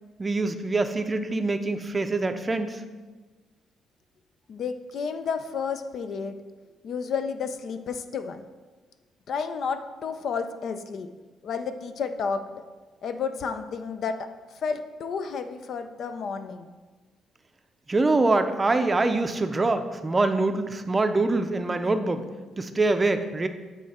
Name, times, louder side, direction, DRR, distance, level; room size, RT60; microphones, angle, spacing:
voice 1, 0.2-2.8 17.9-22.2 22.6-23.5, right 2 dB, 25° right, 8 dB, 0.5 m, -24 dB
voice 2, 4.5-6.4 6.8-8.5 9.3-11.1 11.4-12.6 13.0-16.7, left 5 dB, 65° left, 9 dB, 0.4 m, -31 dB
8.4 x 3.2 x 4.2 m, 1.3 s
cardioid pair, 90°, 0 cm